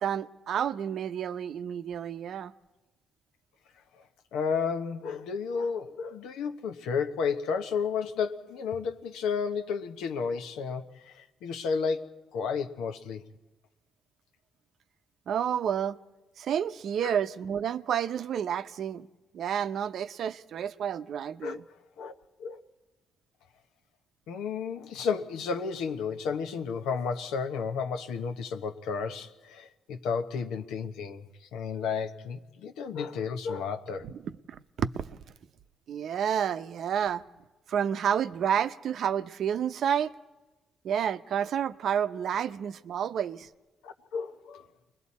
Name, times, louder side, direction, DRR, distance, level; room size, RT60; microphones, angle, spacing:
voice 1, 0.0-2.5 15.3-16.0 16.4-19.1 19.3-21.6 34.0-35.2 35.9-37.2 37.7-40.1 40.8-43.5, right 8 dB, 65° right, 0.7 m, -30 dB
voice 2, 4.3-13.2 17.0-17.1 21.4-21.6 22.0-22.1 22.4-22.6 24.3-34.0 43.8-44.7, left 6 dB, 90° left, 1.0 m, -32 dB
29.5 x 21.5 x 4.2 m
cardioid pair, 90°, 0 cm